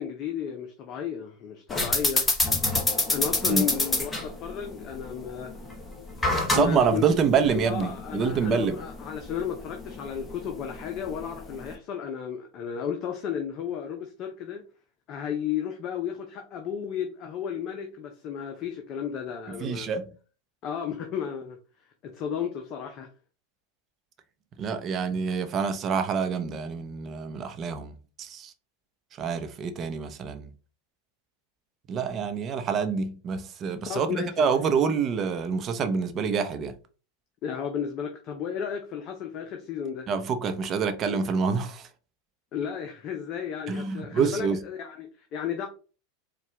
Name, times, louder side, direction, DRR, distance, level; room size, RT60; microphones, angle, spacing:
voice 1, 0.0-2.3 3.1-5.5 6.5-7.2 7.4-14.6 15.1-19.9 20.6-23.1 33.8-34.4 37.4-40.1 42.5-45.7, left 8 dB, 45° left, 0.6 m, -33 dB
sound 1, 1.7-11.7, left 2 dB, 15° left, 1.1 m, -29 dB
voice 2, 6.5-8.8 19.6-20.1 24.6-28.5 29.2-30.5 31.9-36.7 40.1-41.9 43.7-44.6, right 6 dB, 35° right, 0.7 m, -27 dB
4.5 x 2.3 x 3.3 m
hypercardioid pair, 105°, 0 cm